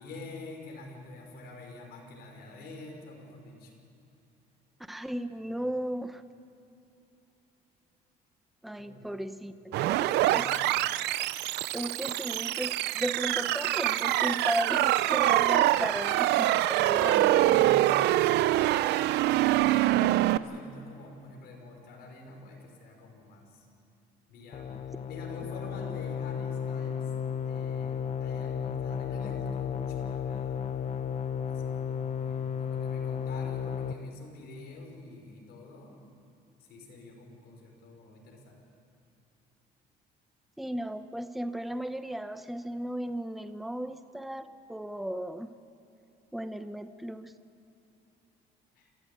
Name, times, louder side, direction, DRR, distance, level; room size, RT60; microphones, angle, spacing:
voice 1, 0.0-3.7 5.4-5.6 8.8-9.6 9.9-10.8 17.0-18.1 19.2-23.7 24.3-27.1 27.4-30.7 31.5-35.9 36.7-38.6 48.8-48.9, left 2 dB, 70° left, 1 dB, 5.6 m, -46 dB
voice 2, 4.9-6.2 8.6-10.5 11.7-17.7 40.6-45.5 46.3-47.3, right 1 dB, ahead, 10 dB, 0.9 m, -35 dB
sound 1, 9.7-20.4, right 15 dB, 80° right, 0.6 m, -25 dB
sound 2, 24.5-33.9, left 7 dB, 40° left, 0.9 m, -33 dB
27.5 x 15.0 x 8.7 m, 2.9 s
cardioid pair, 110°, 17 cm